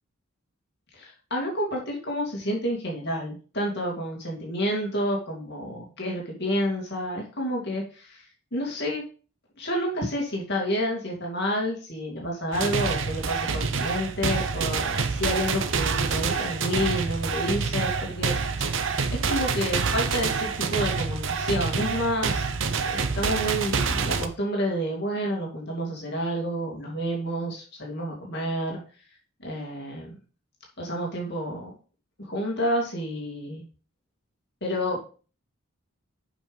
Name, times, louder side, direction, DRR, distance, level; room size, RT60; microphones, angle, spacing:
voice 1, 0.9-9.0 9.6-22.5 22.8-28.8 29.4-30.1 30.8-31.8 32.2-33.6 34.6-35.1, equal, 50° left, -1 dB, 2.4 m, -29 dB
sound 1, 12.5-24.3, right 5 dB, 65° right, 0.7 m, -27 dB
7.2 x 5.7 x 5.3 m, 0.38 s
head